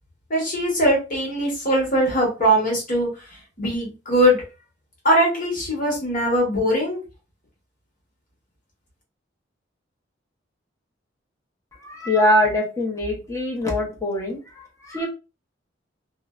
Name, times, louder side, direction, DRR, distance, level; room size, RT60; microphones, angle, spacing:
voice 1, 0.3-3.1 3.6-4.4 5.0-7.0, equal, 45° left, -2 dB, 1.2 m, -21 dB
voice 2, 11.8-15.1, left 1 dB, 15° left, -1 dB, 0.8 m, -23 dB
2.6 x 2.1 x 2.4 m, 0.30 s
head